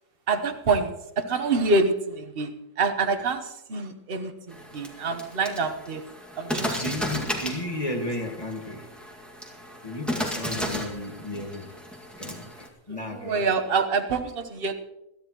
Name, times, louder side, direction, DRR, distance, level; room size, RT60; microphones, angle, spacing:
voice 1, 0.3-6.0 6.4-6.8 13.2-14.7, right 4 dB, 45° right, 6 dB, 1.2 m, -26 dB
sound 1, 4.5-12.7, equal, ahead, 1.9 m, -34 dB
voice 2, 6.7-8.9 9.8-11.7 12.2-13.5, left 1 dB, 20° left, 2 dB, 1.7 m, -34 dB
21.5 x 13.5 x 3.0 m, 0.90 s
omnidirectional pair, 1.5 m